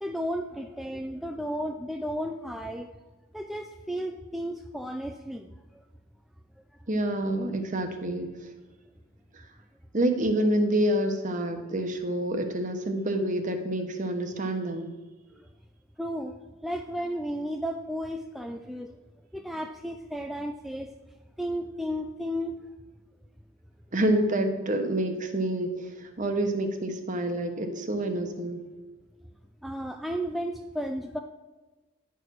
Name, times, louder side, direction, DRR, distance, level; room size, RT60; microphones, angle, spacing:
voice 1, 0.0-2.9 3.3-5.8 15.4-15.5 16.0-16.3 16.6-19.0 19.3-20.9 21.4-22.6 29.6-31.2, equal, ahead, 4 dB, 0.3 m, -33 dB
voice 2, 6.9-8.3 9.3-9.4 9.9-14.9 23.9-28.6, right 1 dB, 40° right, 6 dB, 1.0 m, -27 dB
10.5 x 4.7 x 6.2 m, 1.2 s
head